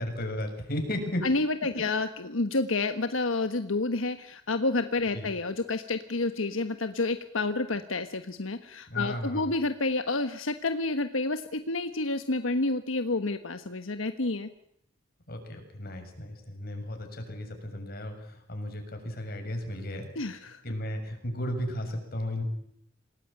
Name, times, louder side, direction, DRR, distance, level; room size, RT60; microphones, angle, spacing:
voice 1, 0.0-1.2 5.1-5.3 8.9-9.5 15.3-20.1 20.6-22.4, left 1 dB, 50° left, 5 dB, 7.0 m, -34 dB
voice 2, 1.2-14.5 20.1-20.6, left 3 dB, 85° left, 9 dB, 1.4 m, -29 dB
27.5 x 20.0 x 9.0 m, 0.73 s
head